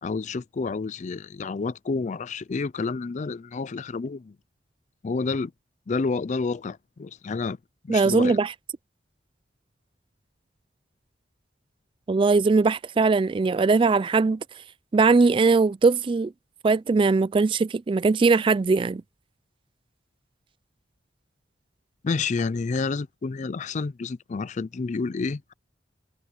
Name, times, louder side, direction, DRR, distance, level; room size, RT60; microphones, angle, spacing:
voice 1, 0.0-4.4 5.0-5.5 5.9-7.6 7.8-8.4 22.0-25.5, left 4 dB, 40° left, 0.4 m, -29 dB
voice 2, 7.9-8.5 12.1-14.4 14.9-16.3 16.6-19.0, right 4 dB, 25° right, 0.3 m, -20 dB
head